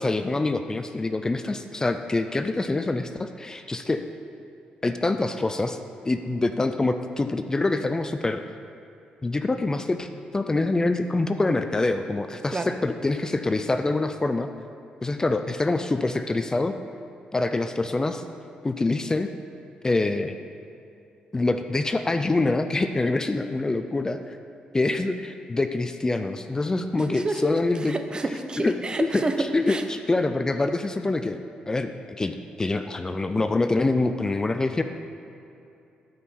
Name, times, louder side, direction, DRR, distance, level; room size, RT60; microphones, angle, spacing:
voice 1, 0.0-4.0 4.8-5.8 6.0-8.4 9.2-14.5 15.0-16.7 17.3-18.3 18.6-19.3 19.8-20.4 21.3-24.4 24.7-27.9 28.6-28.7 29.1-31.4 31.7-34.8, left 2 dB, 20° left, 8 dB, 0.4 m, -25 dB
voice 2, 27.0-27.5 27.9-29.4 29.7-29.8, right 3 dB, 30° right, 6 dB, 0.7 m, -29 dB
12.5 x 5.5 x 4.3 m, 2.7 s
cardioid pair, 80°, 3 cm